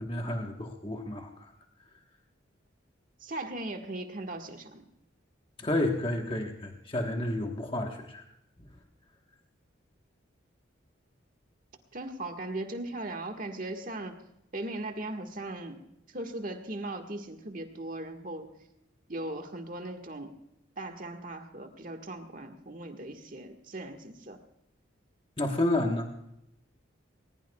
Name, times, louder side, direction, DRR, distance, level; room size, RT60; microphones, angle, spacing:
voice 1, 0.0-1.5 5.6-8.2 25.4-26.1, left 1 dB, 25° left, 2 dB, 1.3 m, -30 dB
voice 2, 3.2-4.8 11.9-14.2 14.5-15.8 16.1-18.5 19.1-20.4 20.8-24.4, right 2 dB, 45° right, 4 dB, 1.6 m, -38 dB
20.5 x 20.0 x 2.3 m, 0.82 s
head